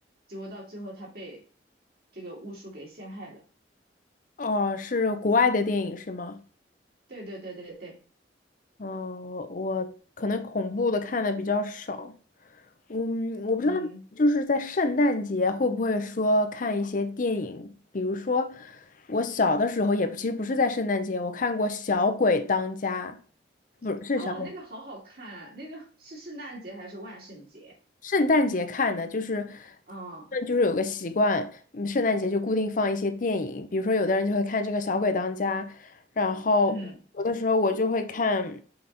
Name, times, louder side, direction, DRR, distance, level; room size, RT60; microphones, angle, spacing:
voice 1, 0.3-1.4 2.1-3.4 7.1-8.0 13.6-14.0 24.2-27.7 29.9-30.3 36.7-37.0, right 1 dB, 60° right, 2.6 m, -41 dB
voice 2, 4.4-6.4 8.8-12.1 12.9-13.9 14.2-23.2 23.8-24.5 28.0-29.8 30.3-36.8 37.2-38.6, left 3 dB, 50° left, 0.6 m, -26 dB
5.7 x 3.9 x 4.2 m
head